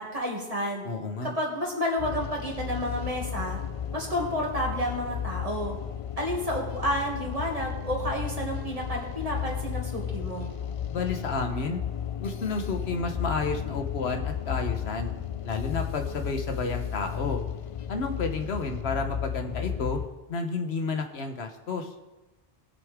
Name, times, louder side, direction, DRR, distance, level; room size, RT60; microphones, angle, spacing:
voice 1, 0.0-0.8 1.2-3.6 3.9-5.8 6.2-10.5, equal, 35° right, -2 dB, 2.4 m, -30 dB
voice 2, 0.8-1.3 10.9-11.8 12.2-15.1 15.4-17.4 17.9-20.0 20.3-21.9, left 4 dB, 90° left, 5 dB, 1.4 m, -31 dB
sound 1, 2.0-20.1, left 9 dB, 50° left, 0.4 m, -34 dB
20.0 x 6.8 x 3.6 m, 1.1 s
omnidirectional pair, 1.1 m